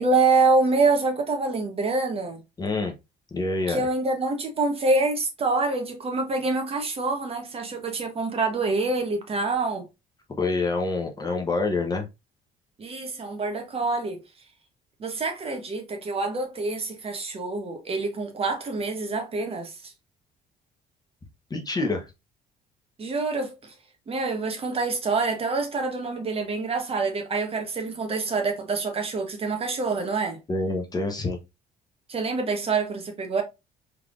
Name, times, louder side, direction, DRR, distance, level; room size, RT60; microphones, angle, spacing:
voice 1, 0.0-2.4 3.7-9.9 12.8-14.2 15.0-19.9 23.0-23.7 24.1-30.4 32.1-33.4, right 3 dB, 35° right, 1.0 m, -26 dB
voice 2, 2.6-2.9 3.3-3.9 10.4-12.1 21.5-22.1 30.5-31.4, left 3 dB, 25° left, 1.0 m, -26 dB
3.6 x 3.3 x 2.4 m
cardioid pair, 110°, 17 cm